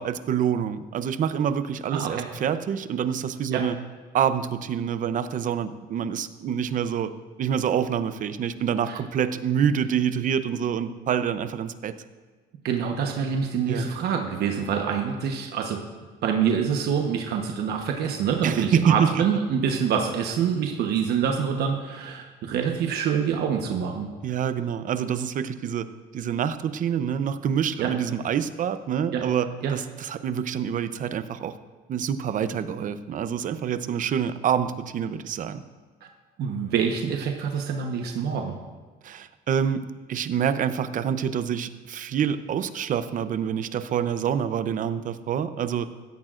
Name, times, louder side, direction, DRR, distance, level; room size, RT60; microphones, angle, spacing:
voice 1, 0.0-3.8 4.1-7.1 7.4-11.9 13.7-13.9 18.4-19.2 24.2-25.9 26.1-31.5 31.9-35.6 39.0-45.9, right 8 dB, 50° right, 11 dB, 0.7 m, -26 dB
voice 2, 1.9-2.3 3.5-3.7 8.9-9.0 12.6-15.8 16.2-24.1 27.8-27.9 29.1-29.3 29.6-29.7 36.4-38.6, right 7 dB, 70° right, 3 dB, 1.1 m, -26 dB
16.5 x 13.5 x 2.5 m, 1.4 s
cardioid pair, 110°, 17 cm